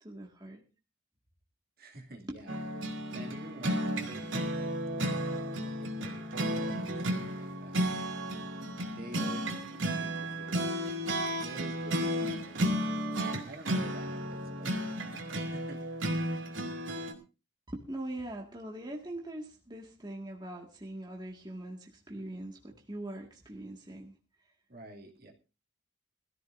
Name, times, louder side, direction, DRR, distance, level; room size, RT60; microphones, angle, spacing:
voice 1, 0.0-0.6 2.3-2.4 17.7-24.1, right 1 dB, 20° right, 0 dB, 1.9 m, -42 dB
voice 2, 1.8-2.6 3.1-5.2 5.6-7.8 8.9-9.6 9.9-10.7 11.3-16.1 24.7-25.3, right 1 dB, 50° right, 2 dB, 2.5 m, -49 dB
sound 1, 2.5-17.1, equal, 70° right, 2.6 m, -33 dB
21.0 x 14.5 x 2.7 m, 0.31 s
head